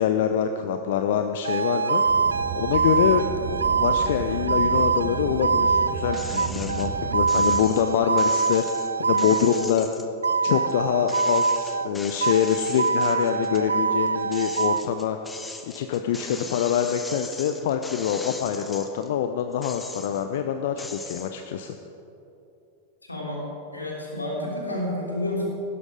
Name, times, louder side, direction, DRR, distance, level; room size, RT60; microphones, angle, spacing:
voice 1, 0.0-2.0 2.6-3.2 3.7-8.6 9.0-9.9 10.4-15.2 15.7-21.7, left 9 dB, 55° left, 7 dB, 0.7 m, -25 dB
sound 1, 1.4-9.7 10.2-11.9 12.2-14.8, right 4 dB, 75° right, 0.3 m, -24 dB
Car, 2.1-7.5, right 5 dB, 55° right, 1.5 m, -33 dB
sound 2, 6.1-6.9 7.3-10.7 11.1-13.7 14.1-19.1 19.5-20.4 20.8-21.3, left 3 dB, 10° left, 1.2 m, -39 dB
voice 2, 23.0-23.4 23.7-25.5, left 1 dB, 80° left, -2 dB, 3.4 m, -30 dB
16.0 x 12.5 x 5.0 m, 2.8 s
figure-of-eight pair, 90°, 0 cm